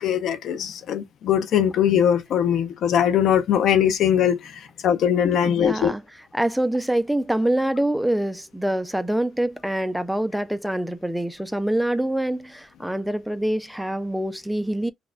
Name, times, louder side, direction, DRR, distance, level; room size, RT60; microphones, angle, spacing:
voice 1, 0.0-5.9, left 9 dB, 75° left, 0.6 m, -21 dB
voice 2, 5.4-6.0 6.3-14.9, right 1 dB, 5° right, 0.5 m, -25 dB
4.0 x 2.3 x 2.4 m
cardioid pair, 90°, 0 cm